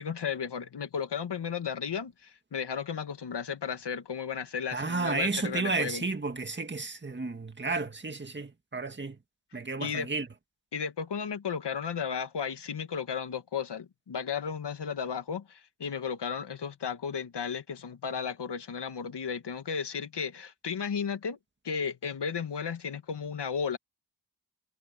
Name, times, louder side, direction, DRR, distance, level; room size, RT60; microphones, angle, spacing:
voice 1, 0.0-6.1 9.8-10.1 10.7-21.4 21.6-23.8, left 6 dB, 80° left, 1.8 m, -34 dB
voice 2, 4.7-9.2 9.5-10.3, right 3 dB, 25° right, 1.9 m, -32 dB
wide cardioid pair, 125°, 41 cm